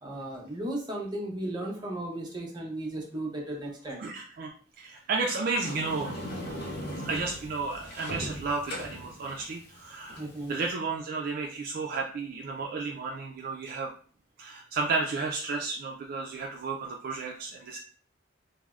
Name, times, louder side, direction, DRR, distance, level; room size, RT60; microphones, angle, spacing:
voice 1, 0.0-4.0 10.2-10.5, right 1 dB, 25° right, -2 dB, 0.8 m, -35 dB
voice 2, 4.0-4.5 4.8-6.3 7.0-10.2 10.5-13.9 14.4-17.8, right 4 dB, 50° right, 0 dB, 0.3 m, -32 dB
Sliding door, 5.5-10.7, equal, 60° left, 0.6 m, -39 dB
3.3 x 2.0 x 2.3 m, 0.43 s
head